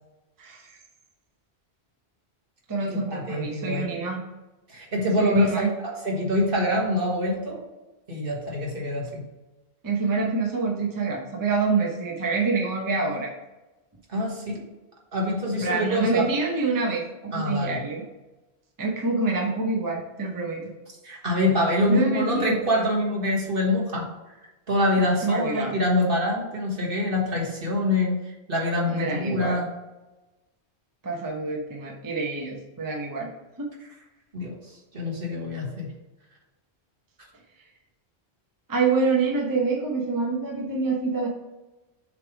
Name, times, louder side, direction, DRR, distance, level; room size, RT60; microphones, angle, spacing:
voice 1, 0.4-0.8 2.7-4.2 5.2-5.7 9.8-13.3 15.6-18.0 18.8-20.6 21.9-22.6 25.2-25.7 28.9-29.6 31.0-33.3 33.6-33.7 38.7-41.3, right 4 dB, 20° right, -1 dB, 0.8 m, -26 dB
voice 2, 2.9-3.9 4.7-5.7 6.0-7.6 8.1-9.2 14.1-14.6 15.1-16.2 17.3-17.8 21.0-24.0 24.7-29.6 34.3-34.5 34.9-35.9, left 1 dB, 55° right, -1 dB, 1.6 m, -25 dB
6.9 x 3.3 x 4.8 m, 1.1 s
omnidirectional pair, 1.1 m